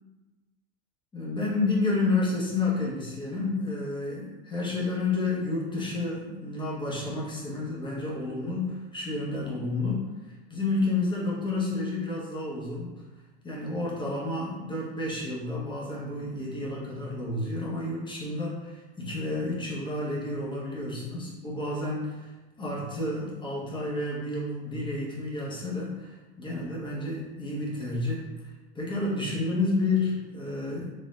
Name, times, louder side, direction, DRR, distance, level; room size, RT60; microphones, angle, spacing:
voice 1, 1.1-13.0 13.4-30.9, left 2 dB, 15° left, -5 dB, 1.2 m, -30 dB
4.0 x 2.8 x 2.6 m, 1.2 s
hypercardioid pair, 100°, 31 cm